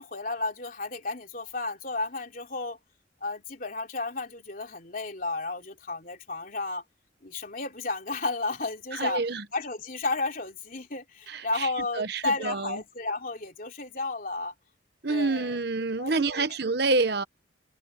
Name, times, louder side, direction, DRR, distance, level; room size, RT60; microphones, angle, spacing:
voice 1, 0.0-2.8 3.2-6.8 7.2-9.2 9.5-14.5 15.1-15.6 16.0-16.4, left 3 dB, 45° left, 3.5 m, -32 dB
voice 2, 8.9-9.4 11.3-11.7 12.0-12.8 15.0-17.2, right 3 dB, 55° right, 1.0 m, -27 dB
head